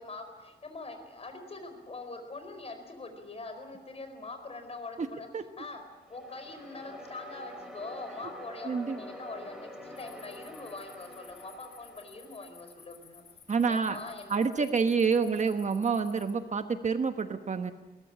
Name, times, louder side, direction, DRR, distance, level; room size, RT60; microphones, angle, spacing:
voice 1, 0.0-5.3 5.6-5.8 6.1-13.2 13.7-14.9 15.2-15.3, left 3 dB, 35° left, 7 dB, 4.5 m, -43 dB
sound 1, 5.9-13.0, left 1 dB, 5° right, 4.4 m, -47 dB
voice 2, 8.6-9.0 13.5-14.0 14.3-17.7, right 5 dB, 45° right, 8 dB, 1.2 m, -28 dB
sound 2, 10.0-16.3, left 7 dB, 80° left, 2.8 m, -56 dB
22.0 x 19.0 x 8.6 m, 1.1 s
wide cardioid pair, 145°, 17 cm